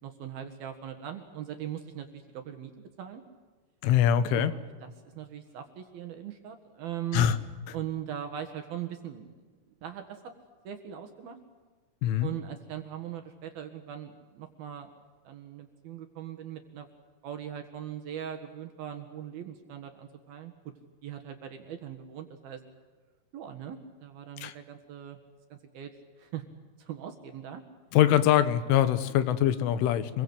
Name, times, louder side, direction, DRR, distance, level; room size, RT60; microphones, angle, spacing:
voice 1, 0.0-2.7 3.0-3.2 4.3-7.3 7.7-9.3 9.8-10.2 10.6-11.4 12.2-14.9 15.2-16.9 17.2-20.5 21.0-22.6 23.3-25.2 25.5-25.9 26.2-26.4 26.8-27.6, right 10 dB, 60° right, 5 dB, 2.9 m, -40 dB
voice 2, 3.8-4.5 7.1-7.4 12.0-12.3 24.4-24.5 27.9-30.2, left 10 dB, 80° left, 13 dB, 3.6 m, -23 dB
27.0 x 22.0 x 8.1 m, 1.4 s
omnidirectional pair, 5.8 m